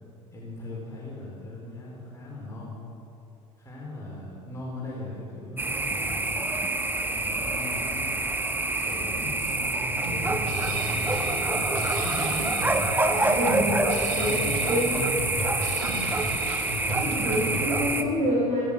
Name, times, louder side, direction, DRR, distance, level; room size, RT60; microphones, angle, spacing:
voice 1, 0.3-2.7 3.6-6.4 7.1-8.0 8.6-12.8 14.2-15.2 16.0-16.4 17.1-18.5, left 2 dB, 20° left, -5 dB, 4.7 m, -38 dB
sound 1, 5.6-18.0, right 2 dB, 10° right, 1.3 m, -27 dB
Drum kit, 10.0-17.7, right 2 dB, 65° right, 2.4 m, -34 dB
voice 2, 13.1-14.4 14.7-14.8 15.8-15.9 17.0-18.6, equal, 45° right, -5 dB, 4.8 m, -27 dB
17.5 x 15.5 x 5.1 m, 2.8 s
figure-of-eight pair, 60°, 16 cm